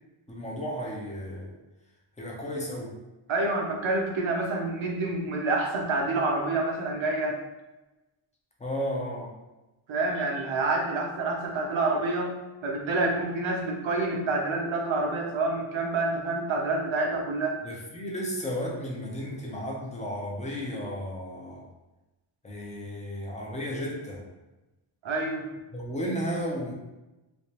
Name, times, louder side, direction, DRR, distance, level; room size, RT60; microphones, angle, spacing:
voice 1, 0.3-1.5 2.2-3.0 8.6-9.3 17.6-21.6 22.4-24.2 25.7-26.7, equal, 15° left, -2 dB, 0.6 m, -33 dB
voice 2, 3.3-7.4 9.9-17.6 25.0-25.5, right 2 dB, 75° right, 0 dB, 0.8 m, -28 dB
3.3 x 2.9 x 2.9 m, 1.0 s
wide cardioid pair, 180°, 47 cm